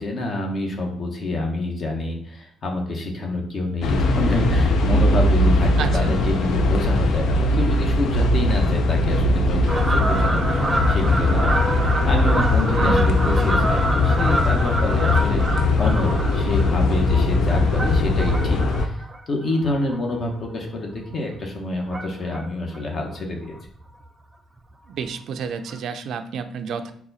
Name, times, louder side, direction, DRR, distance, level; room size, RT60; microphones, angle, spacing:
voice 1, 0.0-10.4 10.9-11.7 12.0-23.5, left 2 dB, 50° left, 1 dB, 1.0 m, -27 dB
sound 1, 3.8-18.9, left 2 dB, 75° left, 0.5 m, -20 dB
voice 2, 5.8-6.2 12.7-13.1 24.9-26.9, right 6 dB, 70° right, 8 dB, 0.4 m, -30 dB
Fowl, 9.7-20.5 20.9-21.2 21.9-22.5 22.7-22.8 23.1-23.2 23.5-23.6 23.9-24.1 25.1-25.2 25.7-25.8, right 2 dB, 20° right, 0.6 m, -27 dB
4.1 x 2.3 x 4.0 m, 0.62 s
cardioid pair, 90°, 0 cm